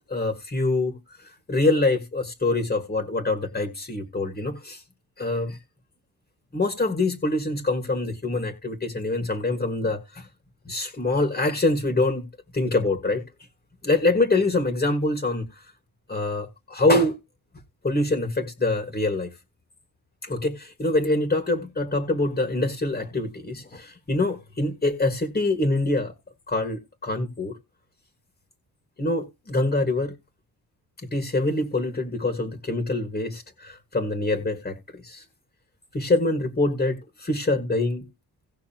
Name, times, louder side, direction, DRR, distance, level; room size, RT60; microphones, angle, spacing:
voice 1, 0.1-1.0 1.5-4.8 5.2-5.6 6.5-10.3 10.6-12.3 12.5-13.2 13.8-15.5 16.1-17.2 17.8-19.3 20.2-26.1 26.5-27.6 29.0-30.1 31.1-34.7 35.0-35.2 35.9-38.0, left 2 dB, 25° left, 1.7 m, -25 dB
18.0 x 6.2 x 2.9 m
wide cardioid pair, 140°, 38 cm